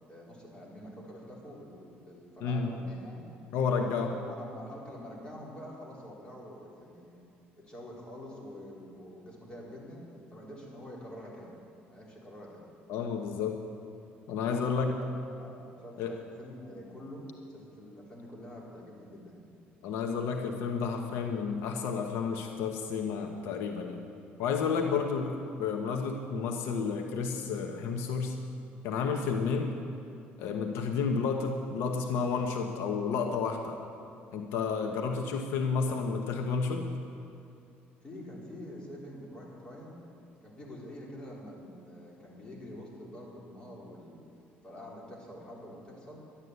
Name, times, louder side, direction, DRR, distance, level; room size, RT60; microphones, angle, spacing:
voice 1, 0.1-3.3 3.8-7.2 7.7-11.6 11.9-12.6 14.6-15.1 15.4-19.5 35.8-36.1 38.0-40.0 40.4-44.3 44.6-46.2, left 1 dB, 20° left, -4 dB, 3.9 m, -46 dB
voice 2, 3.5-4.1 12.9-13.6 14.3-14.9 16.0-16.1 19.8-24.0 24.4-28.3 28.8-29.7 30.4-33.8 34.3-36.9, left 5 dB, 80° left, 3 dB, 1.1 m, -31 dB
11.5 x 11.0 x 8.1 m, 2.5 s
cardioid pair, 125°, 4 cm